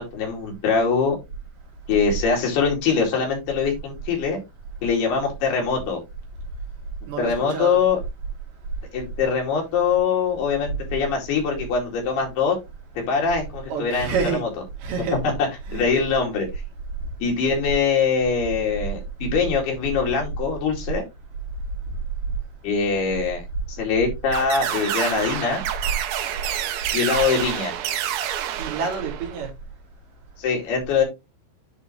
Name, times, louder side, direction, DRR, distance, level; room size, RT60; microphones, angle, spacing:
voice 1, 0.1-1.2 1.9-4.4 4.8-6.0 7.2-8.0 8.9-12.6 13.0-14.5 15.2-16.5 17.2-21.0 22.6-23.4 23.7-25.6 26.9-27.7 30.4-31.0, left 5 dB, 70° left, 4.2 m, -23 dB
voice 2, 7.1-7.8 13.7-14.4 14.8-15.2 15.7-15.8 28.6-29.5, right 5 dB, 65° right, 4.0 m, -27 dB
sound 1, 24.3-29.5, right 11 dB, 85° right, 3.1 m, -28 dB
10.5 x 3.9 x 3.1 m
omnidirectional pair, 4.9 m